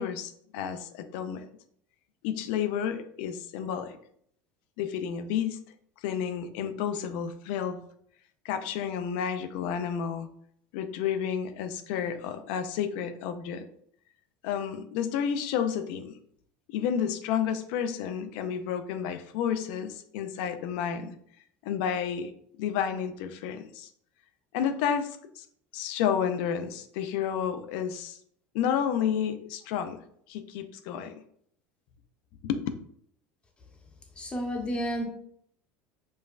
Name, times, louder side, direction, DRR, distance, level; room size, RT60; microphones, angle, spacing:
voice 1, 0.0-1.4 2.2-4.0 4.8-5.6 6.0-7.8 8.4-10.3 10.7-13.6 14.4-16.1 16.7-21.2 21.6-22.3 22.6-23.9 24.5-25.5 25.7-28.2 28.5-30.0 30.3-31.1 32.4-32.6, left 8 dB, 75° left, 0.4 m, -31 dB
voice 2, 34.2-35.0, equal, 20° left, 0.9 m, -31 dB
5.2 x 2.1 x 2.4 m
supercardioid pair, 110°, 6 cm